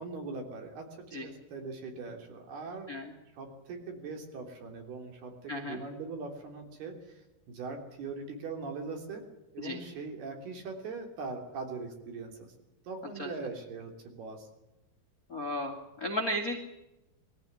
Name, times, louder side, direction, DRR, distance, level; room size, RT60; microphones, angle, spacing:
voice 1, 0.0-3.0 3.3-9.2 9.5-12.5 12.8-14.5, right 4 dB, 60° right, 3 dB, 5.1 m, -41 dB
voice 2, 5.5-5.8 9.6-9.8 13.2-13.3 15.3-16.6, equal, 40° left, 3 dB, 1.3 m, -34 dB
23.0 x 14.5 x 9.7 m, 0.96 s
omnidirectional pair, 5.4 m